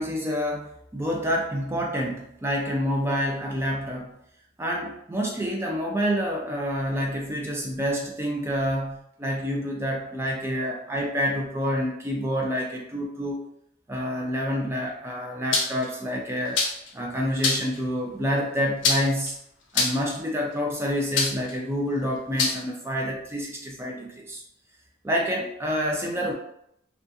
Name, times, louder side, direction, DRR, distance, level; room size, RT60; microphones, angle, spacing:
voice 1, 0.0-4.2 4.6-13.4 13.9-16.6 16.9-19.4 19.7-24.4 25.0-26.3, equal, 15° right, 0 dB, 0.3 m, -28 dB
sound 1, 15.5-15.9 16.6-16.9 17.4-17.8 18.8-19.3 19.7-20.1 21.2-21.5 22.4-22.6, left 4 dB, 70° left, 0.5 m, -24 dB
2.4 x 2.3 x 2.6 m, 0.74 s
head